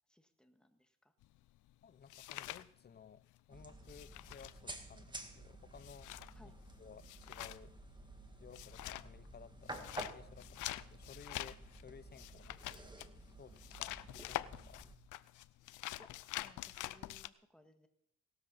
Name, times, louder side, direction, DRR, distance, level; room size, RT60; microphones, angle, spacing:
voice 1, 0.1-1.1 6.3-6.6 13.9-14.0 16.0-17.9, equal, 5° left, 6 dB, 1.7 m, -64 dB
sound 1, 1.2-3.4 3.6-17.3, left 16 dB, 85° left, 0.6 m, -46 dB
voice 2, 1.8-6.1 6.4-6.5 6.8-7.7 8.4-13.0 13.4-13.9 14.3-14.9, left 7 dB, 35° left, 16 dB, 0.7 m, -57 dB
sound 2, 3.5-15.0, right 2 dB, 15° right, 1.7 m, -52 dB
18.5 x 13.0 x 4.2 m, 0.71 s
cardioid pair, 90°, 30 cm